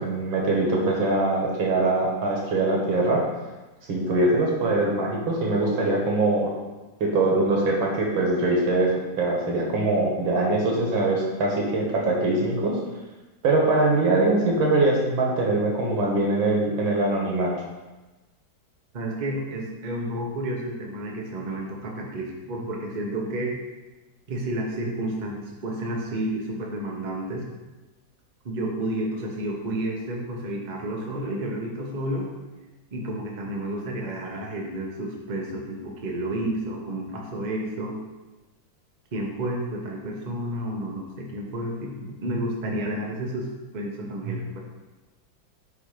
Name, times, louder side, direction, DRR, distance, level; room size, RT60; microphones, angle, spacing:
voice 1, 0.0-3.2 3.9-6.5 7.0-8.9 9.2-12.8 13.4-17.5, right 2 dB, 90° right, -2 dB, 2.1 m, -22 dB
voice 2, 18.9-23.6 24.3-27.5 28.4-32.3 32.9-38.0 39.1-44.6, right 1 dB, 35° right, -1 dB, 0.7 m, -31 dB
7.8 x 2.8 x 4.9 m, 1.2 s
omnidirectional pair, 2.1 m